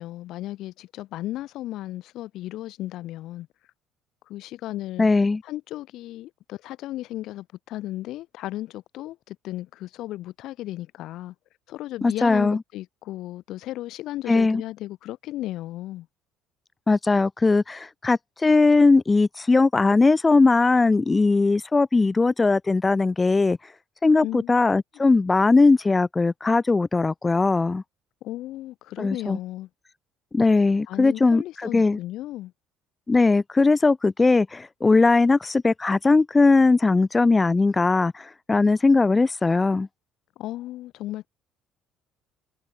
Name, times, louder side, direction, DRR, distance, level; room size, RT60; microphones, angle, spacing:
voice 1, 0.0-3.5 4.3-5.1 5.4-11.3 11.7-16.1 24.2-24.5 28.2-29.7 30.9-32.5 40.4-41.3, left 15 dB, 70° left, 1.9 m, -35 dB
voice 2, 5.0-5.4 12.0-12.6 14.3-14.6 16.9-23.7 24.0-27.8 29.0-29.4 30.3-32.0 33.1-39.9, left 3 dB, 20° left, 0.6 m, -19 dB
supercardioid pair, 95°, 0 cm